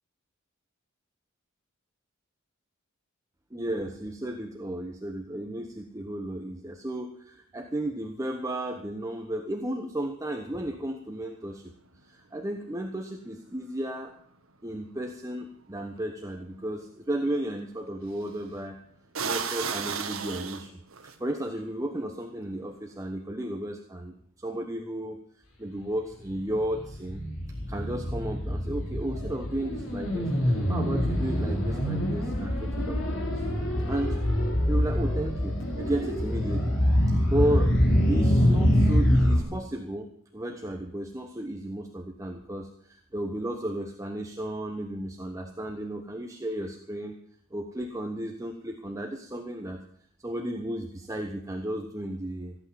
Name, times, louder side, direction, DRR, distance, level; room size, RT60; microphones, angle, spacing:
voice 1, 3.5-11.6 12.0-14.1 14.6-18.8 19.2-20.7 21.2-25.2 25.6-27.2 27.7-33.4 33.9-34.2 34.7-36.7 37.2-37.8 38.1-47.2 47.5-49.8 50.2-52.5, right 1 dB, 15° right, 3 dB, 1.0 m, -33 dB
sound 1, 15.8-15.9 18.1-18.4 19.1-21.1, right 6 dB, 85° right, 1.5 m, -32 dB
sound 2, 26.3-39.4, equal, 70° left, 3.7 m, -25 dB
15.0 x 8.3 x 7.6 m, 0.63 s
head